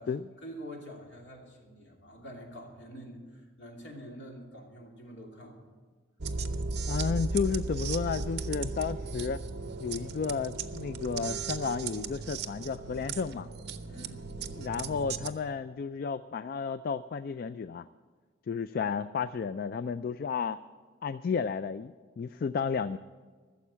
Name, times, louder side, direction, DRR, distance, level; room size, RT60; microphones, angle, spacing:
voice 1, 0.4-5.6 13.9-14.2, equal, 65° left, 0 dB, 2.8 m, -46 dB
sound 1, 6.2-15.3, right 4 dB, 55° right, 0.7 m, -36 dB
voice 2, 6.9-9.4 9.8-13.5 14.6-17.8 18.5-20.6 21.0-23.0, left 5 dB, 50° left, 14 dB, 0.3 m, -32 dB
14.5 x 7.2 x 8.6 m, 1.5 s
head